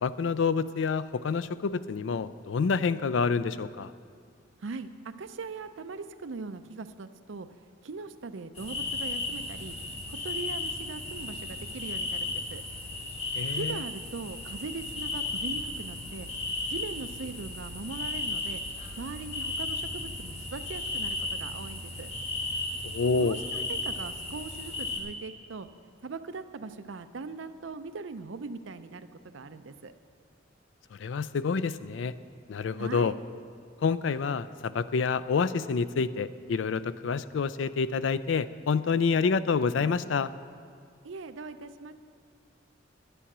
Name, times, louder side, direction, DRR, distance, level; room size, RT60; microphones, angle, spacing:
voice 1, 0.0-3.9 13.4-13.8 22.8-23.4 30.9-32.1 32.5-33.1 33.8-40.3, left 5 dB, 75° left, 15 dB, 0.4 m, -28 dB
voice 2, 4.6-7.5 7.8-9.8 10.1-12.6 13.5-18.6 19.0-22.1 23.2-25.7 26.0-29.9 32.8-33.2 41.0-41.9, right 4 dB, 80° right, 10 dB, 0.5 m, -40 dB
sound 1, 8.6-25.0, left 2 dB, 30° left, 1.4 m, -35 dB
sound 2, 14.1-21.2, equal, 5° right, 1.4 m, -49 dB
10.0 x 10.0 x 6.0 m, 2.2 s
head